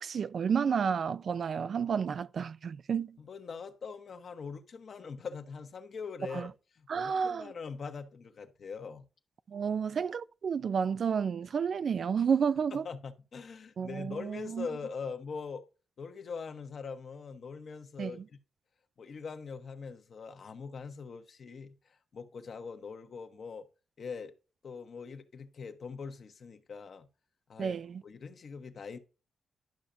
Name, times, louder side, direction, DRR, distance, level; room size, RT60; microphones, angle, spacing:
voice 1, 0.0-3.2 6.3-6.4 6.9-7.5 9.5-12.8 13.8-14.7 18.0-18.1 27.6-28.0, right 6 dB, 60° right, 0.3 m, -31 dB
voice 2, 3.2-9.0 12.7-15.6 16.0-18.4 19.0-23.7 24.0-24.3 24.6-27.1 27.5-27.8 28.0-29.0, left 5 dB, 60° left, 1.1 m, -42 dB
11.5 x 5.7 x 2.6 m
cardioid pair, 65°, 0 cm